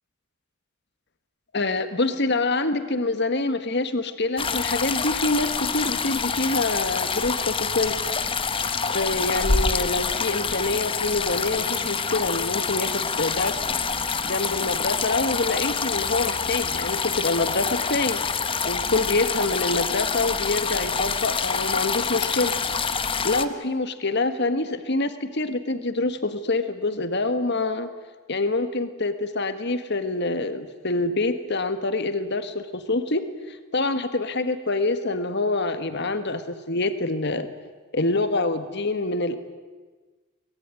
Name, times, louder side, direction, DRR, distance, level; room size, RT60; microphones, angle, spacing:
voice 1, 1.5-7.9 8.9-13.6 14.2-18.2 18.6-22.5 23.2-27.9 28.3-33.2 33.5-37.5 37.9-39.4, left 2 dB, 50° left, 10 dB, 1.7 m, -26 dB
sound 1, 4.4-23.4, left 5 dB, 25° left, 1.0 m, -26 dB
24.0 x 21.0 x 9.8 m, 1.3 s
head